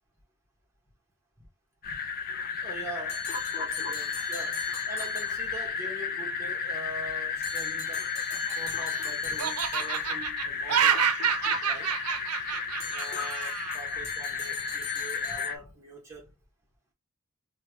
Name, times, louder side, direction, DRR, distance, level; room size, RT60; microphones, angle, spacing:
sound 1, 1.8-15.6, left 6 dB, 40° left, 0.4 m, -33 dB
voice 1, 2.6-8.1 8.6-11.0 11.6-11.9 12.9-16.3, right 2 dB, 15° right, 1.3 m, -43 dB
sound 2, 3.1-5.9 7.4-10.4 12.8-15.5, left 4 dB, 70° left, 1.1 m, -42 dB
Laughter, 8.2-9.0 9.4-13.8, right 8 dB, 85° right, 0.5 m, -28 dB
3.1 x 2.4 x 3.0 m
head